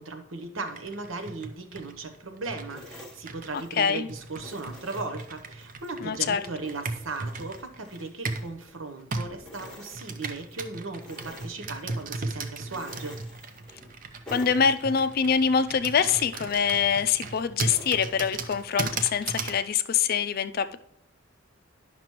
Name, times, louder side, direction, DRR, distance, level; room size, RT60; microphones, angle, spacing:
voice 1, 0.0-13.2, right 3 dB, 85° right, 6 dB, 0.9 m, -37 dB
Computer keyboard, 0.7-8.5 9.1-19.6, right 3 dB, 45° right, 0.6 m, -37 dB
sound 1, 2.7-4.0 4.4-6.0 6.4-9.1 9.4-10.6 11.0-12.2 12.7-14.0 14.3-15.6 16.0-19.5, equal, 5° left, 1.1 m, -48 dB
voice 2, 3.8-4.1 6.0-6.4 14.3-20.7, left 7 dB, 50° left, 11 dB, 0.4 m, -24 dB
10.5 x 5.9 x 3.0 m, 0.74 s
head